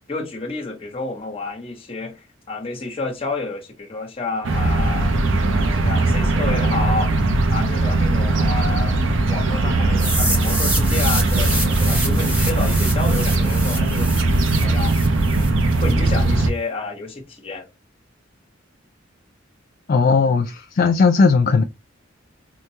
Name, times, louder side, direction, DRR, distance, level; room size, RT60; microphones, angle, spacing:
voice 1, 0.1-5.2 5.7-9.0 9.3-14.1 14.6-15.0 15.8-17.7, left 3 dB, 30° left, 1.1 m, -30 dB
sound 1, 4.4-16.5, right 2 dB, 70° right, 0.7 m, -19 dB
sound 2, 10.0-15.9, equal, 5° right, 1.0 m, -28 dB
voice 2, 19.9-21.6, left 4 dB, 45° left, 0.4 m, -17 dB
4.7 x 2.2 x 2.8 m
head